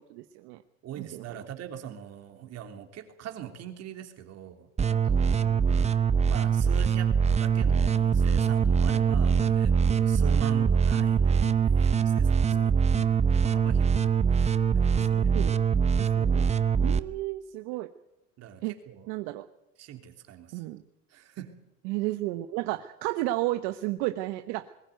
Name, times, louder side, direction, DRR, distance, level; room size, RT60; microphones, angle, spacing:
voice 1, 0.1-0.6 1.0-1.4 5.7-5.9 15.1-16.5 16.8-17.9 18.6-18.7 19.1-19.5 20.5-20.8 21.8-24.7, right 17 dB, 65° right, 9 dB, 1.2 m, -33 dB
voice 2, 0.8-5.9 6.3-15.3 17.0-17.2 18.4-19.1 19.8-20.6 21.1-21.6, right 10 dB, 45° right, 6 dB, 3.2 m, -43 dB
sound 1, 4.8-17.0, right 6 dB, 20° right, 0.8 m, -23 dB
21.5 x 14.5 x 9.3 m, 0.92 s
supercardioid pair, 115°, 35 cm